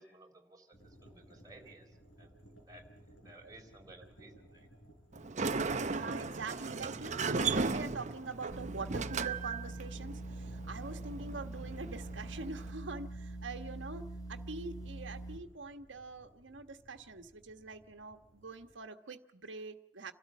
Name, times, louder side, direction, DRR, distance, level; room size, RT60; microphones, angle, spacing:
voice 1, 0.0-2.8 3.2-4.7, right 2 dB, 20° right, 1 dB, 3.9 m, -57 dB
sound 1, 0.7-18.7, equal, 85° left, 6.6 m, -60 dB
Sliding door, 5.1-12.7, right 4 dB, 40° right, 0.7 m, -37 dB
voice 2, 5.8-20.1, right 3 dB, 80° right, 7 dB, 1.4 m, -44 dB
sound 2, 8.5-15.4, right 1 dB, 20° left, 3.6 m, -44 dB
29.0 x 13.0 x 7.4 m, 0.74 s
head